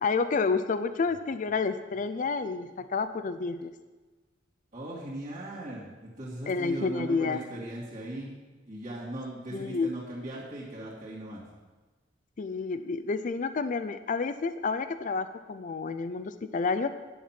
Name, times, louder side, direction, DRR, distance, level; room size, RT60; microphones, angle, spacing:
voice 1, 0.0-3.7 6.5-7.4 9.5-9.9 12.4-16.9, left 4 dB, 40° left, 11 dB, 0.4 m, -29 dB
voice 2, 4.7-8.3 8.7-11.4, right 1 dB, 40° right, -7 dB, 2.2 m, -38 dB
10.0 x 5.9 x 7.3 m, 1.3 s
head